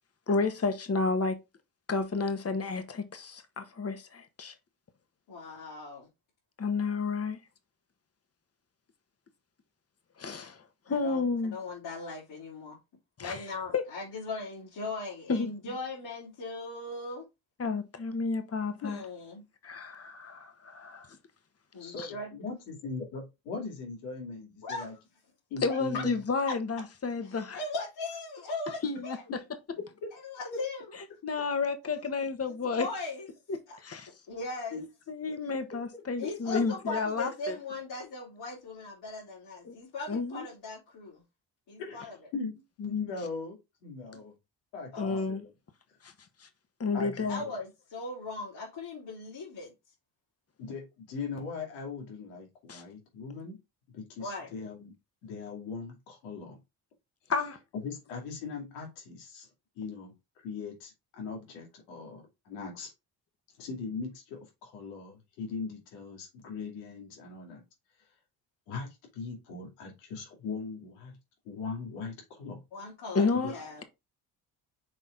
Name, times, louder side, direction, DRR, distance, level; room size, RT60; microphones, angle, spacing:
voice 1, 0.3-1.4 1.9-4.5 6.6-7.4 10.2-11.6 13.2-13.5 13.7-13.8 15.3-15.5 17.6-19.0 19.6-21.1 22.0-22.1 25.6-27.6 28.8-29.2 31.2-32.9 33.5-34.1 34.7-37.5 39.6-39.7 40.1-40.4 45.0-45.4 46.0-46.1 46.4-46.5 46.8-47.4 52.7-52.8 57.3-57.6 73.1-73.8, left 4 dB, 30° left, 1.5 m, -31 dB
voice 2, 5.3-6.1 10.9-11.2 11.5-12.8 13.2-17.3 18.8-19.4 21.7-22.5 24.6-25.0 25.9-26.0 27.2-29.2 30.1-31.0 31.8-32.0 32.8-33.3 33.7-33.8 34.3-34.9 35.3-35.4 36.2-41.2 41.7-42.1 44.9-45.3 47.3-49.7 54.2-54.5 72.7-73.3 73.5-73.8, left 3 dB, 65° left, 3.6 m, -39 dB
voice 3, 21.8-24.9 25.5-26.2 30.0-30.1 30.5-30.6 35.7-36.0 36.5-36.9 41.8-42.0 42.3-44.3 44.7-45.5 46.9-47.5 50.6-53.6 53.9-54.9 55.2-56.6 57.7-59.5 59.8-62.9 63.6-67.6 68.7-71.2 71.4-72.6 73.4-73.5, left 4 dB, 85° left, 2.5 m, -40 dB
6.4 x 4.1 x 3.8 m
hypercardioid pair, 55°, 44 cm